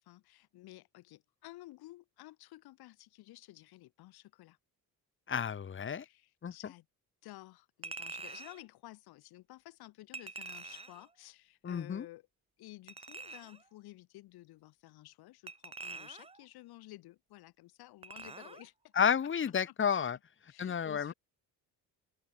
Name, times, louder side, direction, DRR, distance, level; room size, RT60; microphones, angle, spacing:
voice 1, 0.0-4.6 6.0-6.9 7.2-12.3 12.6-18.9 19.7-19.8 20.1-20.2 20.5-21.1, left 17 dB, 85° left, 6.2 m, -53 dB
voice 2, 5.3-6.0 6.4-6.5 11.6-12.1 19.0-20.2 20.6-21.1, left 7 dB, 30° left, 2.7 m, -31 dB
Chink clink, 7.8-8.6 10.1-11.1 12.9-13.6 15.5-16.4 18.0-18.7 19.0-19.2, right 4 dB, 15° right, 1.8 m, -46 dB
open air
cardioid pair, 145°, 37 cm